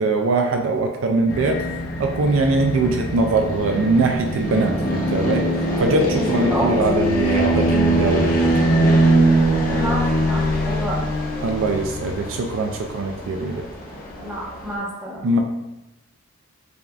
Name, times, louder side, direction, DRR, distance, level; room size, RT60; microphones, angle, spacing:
voice 1, 0.0-1.6 2.0-5.5 5.8-9.0 11.4-13.6 15.2-15.4, right 3 dB, 65° right, 3 dB, 0.3 m, -22 dB
sound 1, 1.3-14.7, right 1 dB, 45° left, 0.8 m, -22 dB
voice 2, 6.1-6.8 9.7-11.0 14.1-15.3, right 1 dB, 10° right, -6 dB, 0.9 m, -29 dB
6.8 x 2.5 x 2.3 m, 1.0 s
head